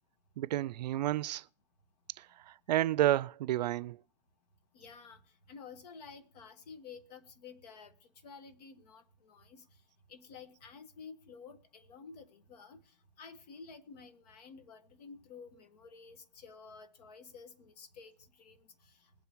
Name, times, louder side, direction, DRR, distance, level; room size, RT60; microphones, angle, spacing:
voice 1, 0.4-1.4 2.2-4.0, right 13 dB, 75° right, 0.4 m, -31 dB
voice 2, 4.7-5.2 5.5-7.9 8.2-9.6 10.1-19.3, left 5 dB, 70° left, 1.6 m, -52 dB
21.0 x 8.2 x 3.0 m
hypercardioid pair, 130°, 21 cm